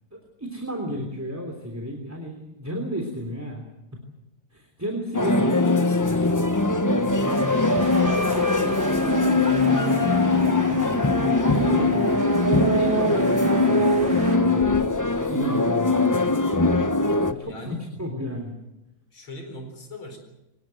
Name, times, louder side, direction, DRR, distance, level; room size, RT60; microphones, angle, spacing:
voice 1, 0.1-3.6 4.5-6.4 6.7-8.9 9.5-11.1 11.5-12.1 12.5-14.8 15.3-16.4 17.3-18.6, equal, 5° right, 1 dB, 3.1 m, -33 dB
sound 1, 5.1-17.3, left 2 dB, 20° left, 0.4 m, -21 dB
voice 2, 5.2-6.4 17.4-17.9 19.1-20.2, left 1 dB, 70° left, 5 dB, 5.2 m, -39 dB
sound 2, 7.3-14.4, right 2 dB, 50° right, 3.8 m, -39 dB
23.5 x 20.0 x 7.8 m, 0.90 s
omnidirectional pair, 2.3 m